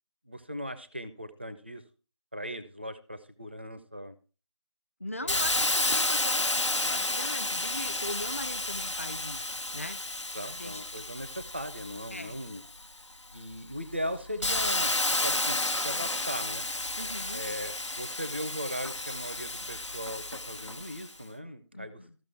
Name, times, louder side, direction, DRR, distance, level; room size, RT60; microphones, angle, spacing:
voice 1, 0.3-1.8 2.3-4.1 5.2-5.7 6.8-6.9 10.3-12.6 13.3-16.7 17.3-22.0, equal, 25° right, 12 dB, 0.4 m, -38 dB
voice 2, 5.0-10.2 10.5-10.8 12.1-12.4 17.0-17.4 21.7-22.1, left 1 dB, 30° left, 11 dB, 0.6 m, -40 dB
Hiss, 5.3-12.8 13.4-21.1, left 2 dB, 80° left, 1.1 m, -31 dB
14.0 x 6.1 x 4.4 m, 0.36 s
figure-of-eight pair, 170°, 15 cm